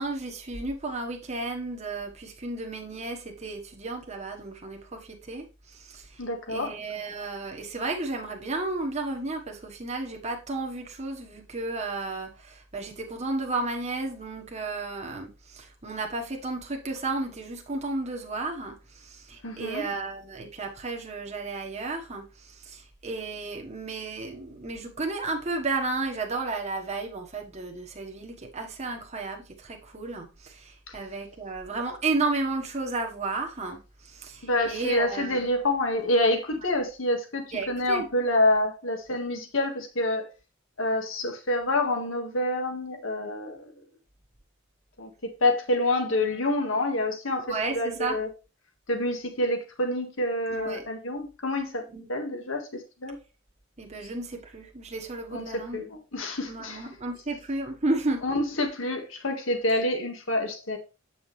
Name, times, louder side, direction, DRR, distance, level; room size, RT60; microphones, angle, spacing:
voice 1, 0.0-5.5 5.7-6.2 6.5-33.8 34.0-35.4 37.5-38.1 47.5-48.1 50.5-50.8 51.9-52.1 53.8-55.8 56.5-58.2, right 3 dB, 35° right, 1.3 m, -33 dB
voice 2, 6.2-6.8 19.4-19.8 30.9-31.0 34.4-40.3 40.8-43.7 45.0-48.3 48.9-53.2 55.3-56.9 58.2-60.8, left 1 dB, 75° left, 1.8 m, -27 dB
8.1 x 5.8 x 3.2 m
head